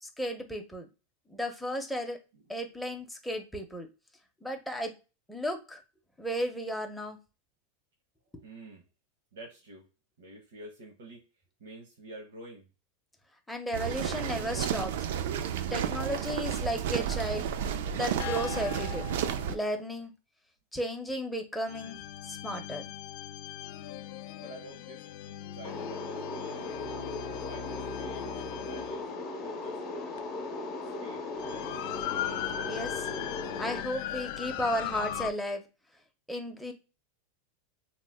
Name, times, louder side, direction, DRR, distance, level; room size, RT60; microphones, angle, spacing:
voice 1, 0.0-0.9 1.3-2.2 2.5-3.9 4.4-4.9 5.3-5.8 6.2-7.2 8.3-8.4 13.5-14.9 15.7-17.5 17.9-19.1 19.5-20.1 20.7-22.0 22.3-22.8 32.7-33.1 33.6-35.6 36.3-36.7, equal, ahead, 2 dB, 0.5 m, -34 dB
voice 2, 8.4-8.8 9.3-9.8 10.2-11.2 11.6-12.7 24.4-25.1 25.5-27.0 27.5-28.3 28.6-29.1 29.4-29.8 31.0-32.1, right 2 dB, 90° right, 0 dB, 0.9 m, -49 dB
sound 1, 13.7-19.6, right 9 dB, 75° right, 0.4 m, -32 dB
sound 2, 17.8-19.7 21.7-29.1 30.2-30.3 31.4-35.3, left 12 dB, 65° left, 0.3 m, -39 dB
sound 3, 25.6-33.8, left 3 dB, 35° left, 0.7 m, -37 dB
2.9 x 2.0 x 3.4 m, 0.30 s
supercardioid pair, 145°, 0 cm